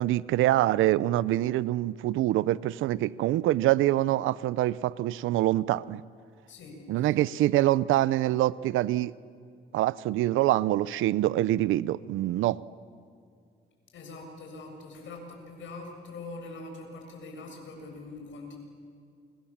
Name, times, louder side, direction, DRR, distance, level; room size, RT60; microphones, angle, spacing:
voice 1, 0.0-6.0 6.9-9.1 9.7-12.6, right 15 dB, 90° right, 19 dB, 0.7 m, -25 dB
voice 2, 6.5-7.1 13.9-18.6, left 2 dB, 75° left, 3 dB, 7.6 m, -43 dB
29.5 x 26.5 x 7.4 m, 2.3 s
cardioid pair, 90°, 20 cm